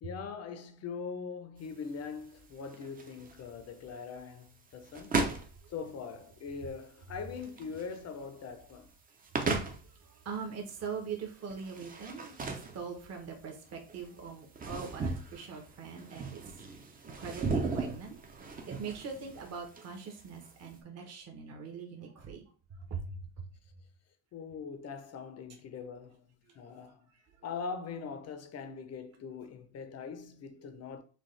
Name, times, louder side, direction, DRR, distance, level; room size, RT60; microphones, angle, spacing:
voice 1, 0.0-5.2 5.7-8.9 15.9-16.0 24.3-27.1 27.4-31.0, left 5 dB, 35° left, 0.6 m, -42 dB
sound 1, 1.6-20.8, right 4 dB, 20° right, 0.6 m, -38 dB
voice 2, 9.6-18.2 18.5-23.2 26.5-26.6, right 5 dB, 35° right, 1.0 m, -42 dB
6.2 x 2.3 x 3.2 m
cardioid pair, 155°, 43 cm